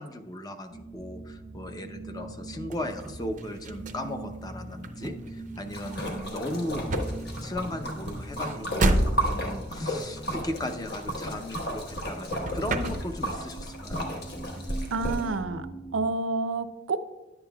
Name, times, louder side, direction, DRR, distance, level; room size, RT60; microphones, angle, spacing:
voice 1, 0.0-6.8 7.4-14.1, left 1 dB, 20° left, 6 dB, 0.6 m, -36 dB
sound 1, 0.7-16.0, right 2 dB, 85° left, 3.2 m, -43 dB
sound 2, 2.7-12.0 12.3-13.5 13.8-15.4, right 1 dB, 40° right, 0.5 m, -32 dB
Splash splatter, 5.7-15.2, equal, 55° left, 1.3 m, -34 dB
voice 2, 14.9-15.7 15.9-17.0, right 3 dB, 85° right, 9 dB, 0.5 m, -29 dB
11.0 x 8.9 x 2.3 m, 1.1 s
head